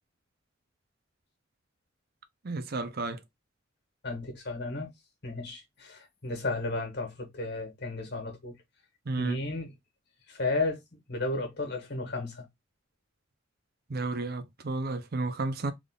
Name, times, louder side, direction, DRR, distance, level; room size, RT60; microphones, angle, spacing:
voice 1, 2.4-3.2 9.1-9.4 13.9-15.7, right 3 dB, 50° right, 0.6 m, -32 dB
voice 2, 4.0-4.9 5.2-8.5 9.2-9.7 10.3-12.5, left 2 dB, 60° left, 1.5 m, -33 dB
3.6 x 2.5 x 3.7 m
head